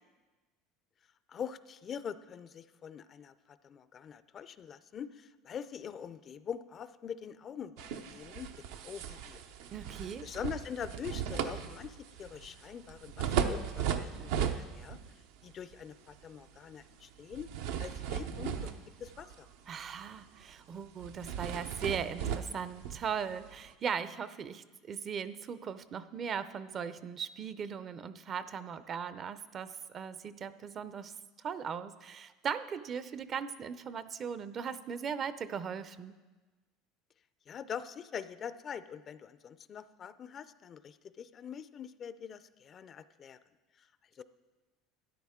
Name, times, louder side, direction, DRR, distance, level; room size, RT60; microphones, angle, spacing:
voice 1, 1.3-9.4 10.2-15.0 15.4-17.5 17.8-18.7 19.0-19.5 37.5-43.4 43.8-43.9 44.1-44.2, left 8 dB, 35° left, 14 dB, 0.4 m, -44 dB
sound 1, 7.8-15.1 15.5-15.7 17.3-19.5 19.9-20.1 20.4-20.5 21.0-23.7, right 8 dB, 80° right, 0.7 m, -37 dB
voice 2, 9.7-10.3 19.7-36.1, right 7 dB, 40° right, 14 dB, 0.5 m, -38 dB
13.0 x 9.9 x 3.6 m, 1.2 s
supercardioid pair, 115°, 0 cm